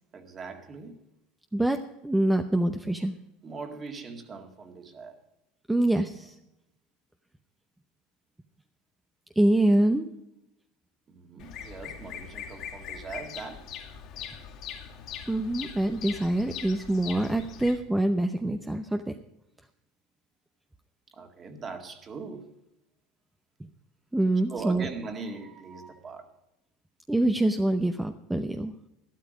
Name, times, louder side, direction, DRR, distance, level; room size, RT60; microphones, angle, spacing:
voice 1, 0.1-1.0 3.4-5.2 11.1-13.7 21.1-22.5 24.5-26.3, right 4 dB, 30° right, 5 dB, 2.0 m, -40 dB
voice 2, 2.0-3.2 5.7-6.4 9.4-10.1 15.3-19.1 24.1-24.9 27.1-28.7, right 1 dB, 5° right, 6 dB, 0.7 m, -25 dB
Bird vocalization bird call bird song, 11.4-17.8, left 8 dB, 50° left, 2.5 m, -41 dB
12.5 x 12.5 x 5.1 m, 0.88 s
supercardioid pair, 125°, 0 cm